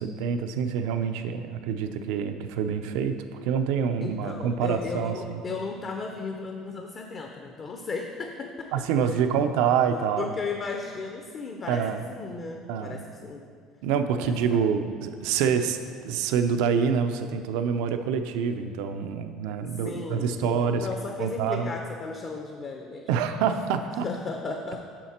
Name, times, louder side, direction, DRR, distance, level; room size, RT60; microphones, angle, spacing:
voice 1, 0.0-5.4 8.7-10.3 11.7-12.0 12.7-13.0 13.8-15.8 16.0-20.9 21.2-21.7 23.1-24.0, right 7 dB, 85° right, 8 dB, 0.5 m, -26 dB
voice 2, 4.0-8.7 9.0-9.2 10.2-13.4 14.2-14.6 19.6-23.1 24.0-24.8, left 4 dB, 30° left, 3 dB, 0.5 m, -35 dB
7.3 x 5.8 x 4.3 m, 2.1 s
cardioid pair, 150°, 0 cm